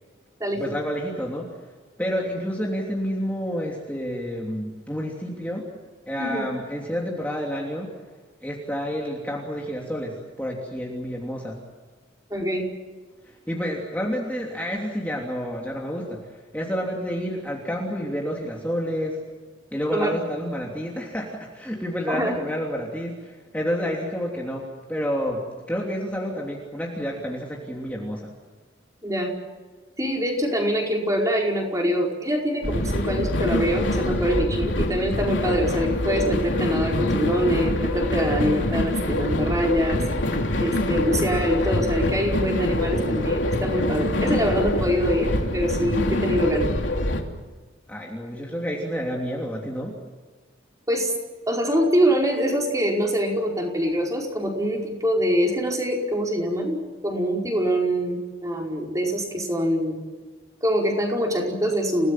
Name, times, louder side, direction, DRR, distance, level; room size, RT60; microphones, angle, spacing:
voice 1, 0.5-1.5 2.0-5.7 6.1-7.9 8.4-11.6 13.2-19.2 19.7-28.3 47.9-50.0, equal, 10° left, -2 dB, 3.1 m, -29 dB
voice 2, 12.3-12.6 19.9-20.2 22.1-22.4 29.0-29.3 30.0-40.0 40.6-46.7 50.9-51.1 51.5-56.8 57.0-59.9 60.6-62.1, equal, 15° right, 0 dB, 5.0 m, -24 dB
sound 1, 32.6-47.2, left 1 dB, 70° left, 3.3 m, -25 dB
29.5 x 19.0 x 7.6 m, 1.4 s
head